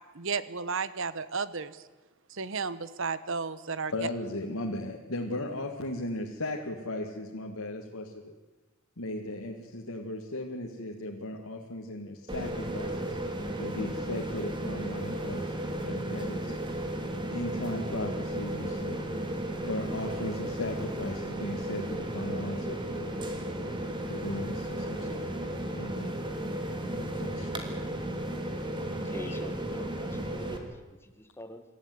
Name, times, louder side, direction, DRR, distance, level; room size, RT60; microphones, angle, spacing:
voice 1, 0.1-1.8 2.3-3.9, right 5 dB, 65° right, 1.2 m, -33 dB
voice 2, 3.9-8.3 9.0-13.0 13.6-16.6 17.3-19.1 19.6-23.2 24.1-25.3 25.7-26.2 26.9-27.5, left 1 dB, 90° left, 2.1 m, -37 dB
sound 1, 12.3-30.6, right 1 dB, 20° right, 2.8 m, -34 dB
voice 3, 29.0-31.6, left 1 dB, 10° left, 1.7 m, -45 dB
26.5 x 14.0 x 9.5 m
head